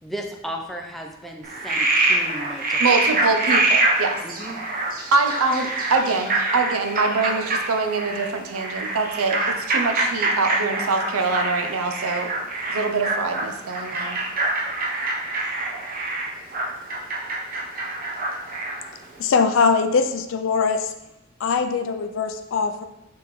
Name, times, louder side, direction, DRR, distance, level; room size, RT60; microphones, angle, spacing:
voice 1, 0.0-3.0 4.2-4.6, equal, ahead, 1 dB, 0.4 m, -35 dB
Frog, 1.4-18.9, right 2 dB, 40° right, 0.8 m, -25 dB
voice 2, 2.8-4.2 5.1-12.3 12.7-14.2, right 4 dB, 80° right, 6 dB, 0.6 m, -24 dB
voice 3, 19.2-20.9 21.4-22.8, left 5 dB, 60° left, 8 dB, 0.4 m, -21 dB
4.8 x 3.5 x 3.1 m, 0.92 s
head